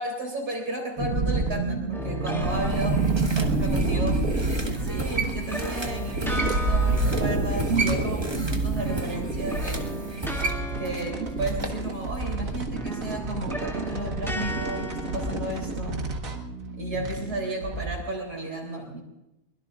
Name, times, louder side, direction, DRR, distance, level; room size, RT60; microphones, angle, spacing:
voice 1, 0.0-3.0 3.3-10.0 10.8-16.1 16.7-19.0, right 1 dB, 85° right, -3 dB, 4.0 m, -33 dB
sound 1, 1.0-18.0, right 3 dB, 60° right, 2.0 m, -28 dB
sound 2, 1.9-3.8 4.8-8.4 8.7-12.3 12.7-16.2, left 1 dB, ahead, 2.4 m, -38 dB
sound 3, 2.4-11.8 12.2-12.3, right 3 dB, 20° right, 1.6 m, -35 dB
23.0 x 21.5 x 2.5 m, 0.91 s
omnidirectional pair, 1.6 m